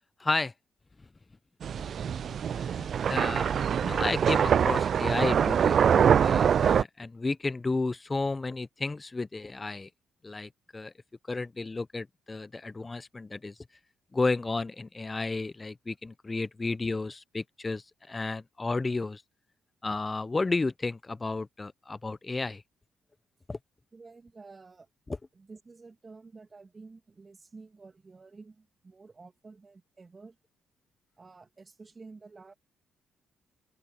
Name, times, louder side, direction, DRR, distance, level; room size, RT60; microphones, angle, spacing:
voice 1, 0.2-0.5 2.5-9.9 10.2-10.9 11.3-13.5 14.1-19.2 19.8-22.6 23.5-23.6, left 3 dB, 30° left, 0.8 m, -32 dB
sound 1, 1.6-6.8, right 8 dB, 60° right, 0.4 m, -24 dB
voice 2, 23.9-24.9 25.3-30.3 31.2-32.5, right 4 dB, 35° right, 2.6 m, -51 dB
open air
hypercardioid pair, 50°, 0 cm